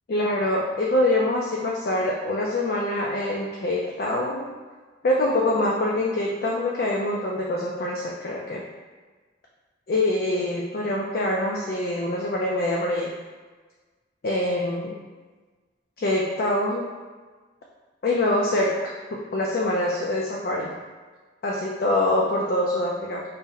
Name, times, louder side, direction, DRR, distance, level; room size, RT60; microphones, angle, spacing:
voice 1, 0.1-4.5 5.0-8.6 9.9-13.1 14.2-15.0 16.0-16.9 18.0-18.8 19.1-20.7 21.4-23.2, left 1 dB, 50° left, -2 dB, 0.4 m, -24 dB
4.0 x 2.1 x 3.8 m, 1.4 s
head